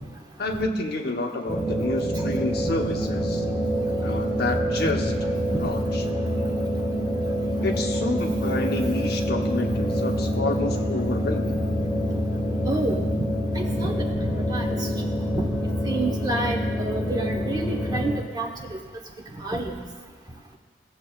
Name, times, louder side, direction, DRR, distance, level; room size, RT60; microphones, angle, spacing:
voice 1, 0.4-3.4 4.0-5.1 5.5-6.0 7.6-11.6, left 2 dB, 60° left, 3 dB, 0.9 m, -29 dB
sound 1, 1.5-18.2, equal, 5° left, 1.0 m, -26 dB
voice 2, 12.7-13.0 13.6-14.1 14.5-14.6 15.8-18.5 19.4-19.7, right 2 dB, 20° right, 1 dB, 1.0 m, -28 dB
17.5 x 7.3 x 2.3 m, 1.5 s
head